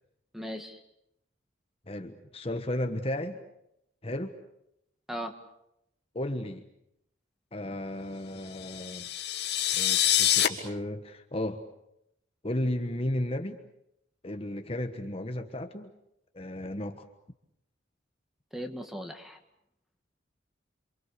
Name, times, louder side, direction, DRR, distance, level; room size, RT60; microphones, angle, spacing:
voice 1, 0.3-0.8 5.1-5.3 18.5-19.4, equal, ahead, 6 dB, 2.0 m, -38 dB
voice 2, 1.9-3.4 4.0-4.4 6.1-6.7 7.5-9.1 9.7-11.6 12.4-13.6 14.2-15.9 16.3-17.1, left 1 dB, 30° left, 6 dB, 1.3 m, -34 dB
sound 1, 8.6-10.5, left 11 dB, 60° left, 2.5 m, -26 dB
28.5 x 25.5 x 6.8 m, 0.80 s
head